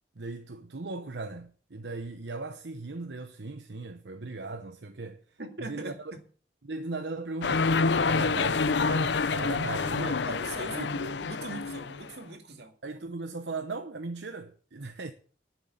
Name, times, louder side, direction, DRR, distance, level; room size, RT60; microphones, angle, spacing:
voice 1, 0.2-6.1 6.6-7.7 8.0-10.3 10.7-11.0 12.8-15.1, right 3 dB, 85° right, 1.0 m, -38 dB
voice 2, 5.4-6.2 10.2-12.7, right 2 dB, 70° right, 2.3 m, -41 dB
sound 1, 7.4-12.1, left 4 dB, 80° left, 0.6 m, -27 dB
11.0 x 7.5 x 8.1 m
head